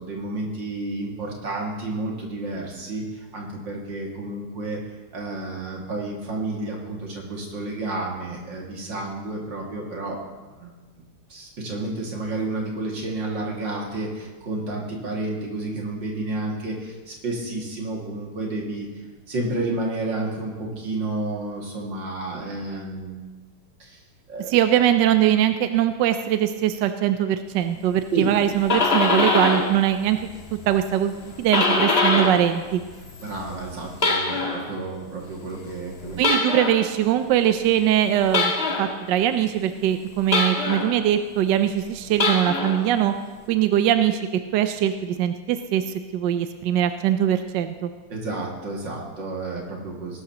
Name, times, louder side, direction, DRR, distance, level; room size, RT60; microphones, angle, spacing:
voice 1, 0.0-3.1 3.3-4.8 5.1-10.2 10.5-10.7 11.3-18.9 19.3-23.2 23.8-24.0 24.3-24.5 28.1-28.3 33.2-36.2 48.1-50.2, right 2 dB, 55° right, -2 dB, 2.9 m, -30 dB
voice 2, 24.5-30.2 30.5-31.1 31.4-32.8 36.2-38.5 38.8-43.1 43.5-44.2 44.5-47.9, right 11 dB, 75° right, 9 dB, 1.1 m, -21 dB
sound 1, 28.4-29.8 30.1-32.5 32.8-34.7 36.2-36.9 38.3-39.0 40.3-41.0 42.1-42.9, left 3 dB, 35° left, 1.4 m, -23 dB
19.5 x 12.0 x 3.0 m, 1.3 s
omnidirectional pair, 2.4 m